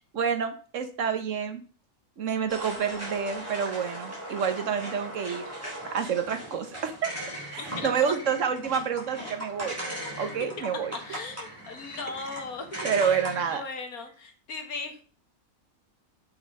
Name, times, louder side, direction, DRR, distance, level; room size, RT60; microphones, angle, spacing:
voice 1, 0.1-1.6 2.2-5.4 5.9-7.1 7.5-9.8 10.2-11.2 12.8-13.6, right 7 dB, 60° right, 9 dB, 1.3 m, -28 dB
sound 1, 2.5-13.6, equal, 10° right, 3.5 m, -39 dB
voice 2, 7.6-8.1 10.9-12.7 13.0-13.2 13.5-15.0, left 4 dB, 70° left, 5 dB, 1.9 m, -38 dB
6.1 x 5.8 x 5.5 m, 0.42 s
omnidirectional pair, 1.6 m